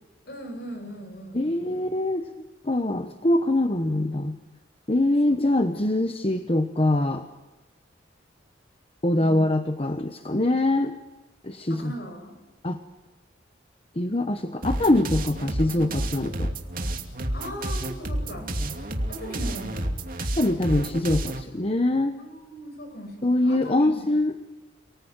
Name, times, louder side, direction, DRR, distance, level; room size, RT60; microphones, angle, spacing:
voice 1, 0.3-1.8 5.3-5.6 9.2-9.5 11.7-12.4 17.3-18.5 19.1-20.0 22.2-24.1, equal, 55° left, 6 dB, 6.1 m, -39 dB
voice 2, 1.3-2.3 2.6-4.4 4.9-7.2 9.0-10.9 11.4-11.9 12.6-12.8 14.0-16.5 20.3-22.1 23.2-24.3, left 1 dB, 30° left, 8 dB, 1.1 m, -23 dB
sound 1, 14.6-21.4, right 1 dB, 50° right, 2.6 m, -30 dB
29.5 x 19.5 x 9.2 m, 1.1 s
head